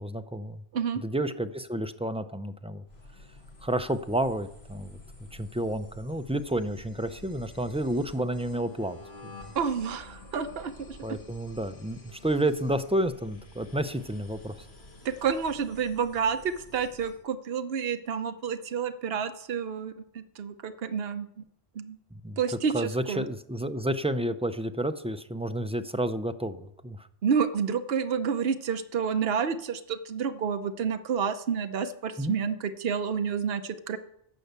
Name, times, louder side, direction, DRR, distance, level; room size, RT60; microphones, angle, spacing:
voice 1, 0.0-0.6 1.0-2.8 3.6-5.0 5.3-9.0 11.0-14.6 22.1-22.4 22.7-27.1 32.2-32.4, right 1 dB, 10° right, 9 dB, 0.4 m, -30 dB
sound 1, 2.9-17.2, left 2 dB, 75° left, 2.0 m, -49 dB
voice 2, 9.5-11.0 15.0-21.4 21.7-22.0 22.4-23.3 27.2-34.0, right 6 dB, 70° right, 8 dB, 1.1 m, -29 dB
13.5 x 5.6 x 8.1 m, 0.73 s
omnidirectional pair, 1.1 m